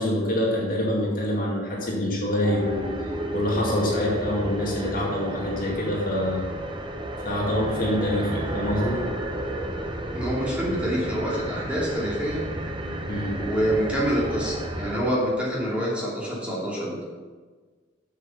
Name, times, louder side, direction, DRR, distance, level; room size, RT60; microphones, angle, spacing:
voice 1, 0.0-2.9 3.3-6.4 7.2-9.0 13.1-13.3, left 1 dB, 45° left, -4 dB, 2.3 m, -25 dB
sound 1, 2.4-15.0, right 1 dB, 25° right, 0.9 m, -32 dB
voice 2, 10.1-12.4 13.4-17.0, equal, 5° right, -7 dB, 2.8 m, -26 dB
8.1 x 7.4 x 5.9 m, 1.4 s
head